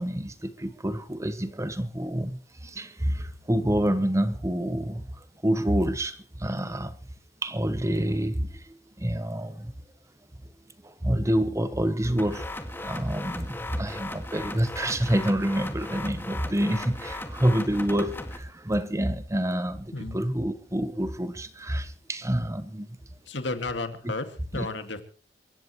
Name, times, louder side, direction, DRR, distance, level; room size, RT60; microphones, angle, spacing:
voice 1, 0.0-7.0 7.4-9.7 10.8-23.0 24.5-24.7, right 1 dB, 15° right, 1.0 m, -28 dB
sound 1, 12.2-18.4, left 1 dB, 10° left, 2.0 m, -37 dB
voice 2, 23.3-25.0, left 3 dB, 70° left, 2.1 m, -33 dB
27.0 x 15.0 x 3.1 m
head